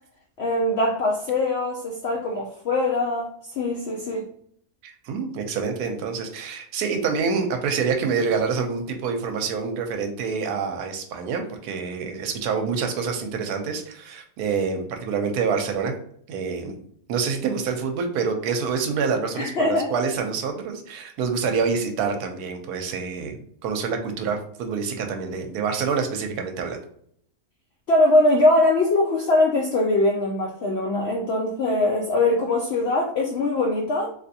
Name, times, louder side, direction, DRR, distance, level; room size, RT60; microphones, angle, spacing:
voice 1, 0.4-4.2 19.3-19.9 27.9-34.1, left 2 dB, 75° left, 0 dB, 0.5 m, -22 dB
voice 2, 4.8-15.9 16.3-16.7 17.1-23.4 23.6-26.8, right 5 dB, 85° right, 4 dB, 1.1 m, -27 dB
3.3 x 2.7 x 2.6 m, 0.63 s
omnidirectional pair, 1.6 m